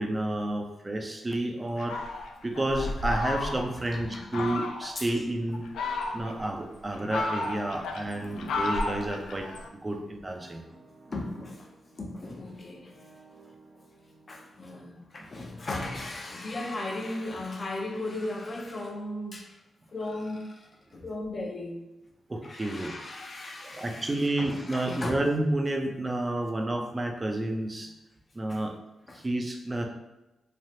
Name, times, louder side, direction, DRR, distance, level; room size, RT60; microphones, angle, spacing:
voice 1, 0.0-2.0 2.4-5.7 6.1-9.5 9.8-10.6 15.2-15.3 22.3-22.9 23.7-27.9 28.3-28.7 29.1-29.9, right 1 dB, 30° right, 3 dB, 0.6 m, -30 dB
Fowl, 1.8-3.8 4.3-4.9 5.5-6.5 6.9-9.7, left 2 dB, 85° left, 0.3 m, -33 dB
voice 2, 3.9-4.6 5.0-5.1 11.1-12.9 14.3-19.6 19.9-21.8 22.4-25.2 28.5-28.6 29.1-29.3, left 2 dB, 45° left, 1 dB, 0.7 m, -37 dB
sound 1, 5.8-14.7, right 4 dB, 75° right, 0.8 m, -53 dB
3.3 x 2.4 x 2.7 m, 0.97 s
supercardioid pair, 50°, 0 cm